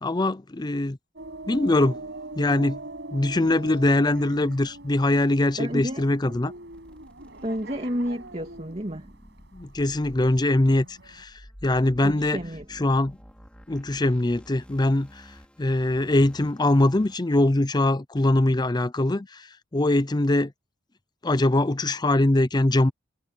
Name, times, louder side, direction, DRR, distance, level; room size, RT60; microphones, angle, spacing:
voice 1, 0.0-1.0 1.5-2.0 2.4-2.8 3.1-6.5 9.5-12.4 12.7-13.2 13.7-20.5 21.2-22.9, left 1 dB, 20° left, 0.6 m, -22 dB
sound 1, 1.2-11.2, right 2 dB, 65° right, 6.2 m, -42 dB
voice 2, 5.6-6.0 7.4-9.1 12.0-12.7, equal, 30° right, 2.5 m, -30 dB
sound 2, 6.7-17.5, equal, 5° left, 5.2 m, -51 dB
head